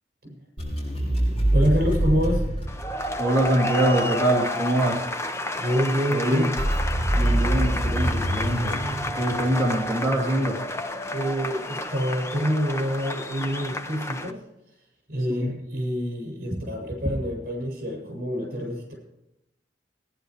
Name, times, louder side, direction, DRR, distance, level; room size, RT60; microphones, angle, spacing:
sound 1, 0.6-3.6 6.6-10.0, right 1 dB, 30° left, 6.2 m, -25 dB
voice 1, 1.5-2.5 5.6-6.5 11.1-14.4 15.1-18.9, equal, 55° right, 0 dB, 7.7 m, -27 dB
sound 2, 2.7-14.3, left 1 dB, 15° left, 0.8 m, -30 dB
voice 2, 3.2-5.0 6.1-6.5 7.2-8.8 9.2-10.6 15.3-15.5 16.5-16.6, right 1 dB, 20° right, -5 dB, 3.0 m, -24 dB
20.5 x 11.0 x 5.0 m, 0.88 s
head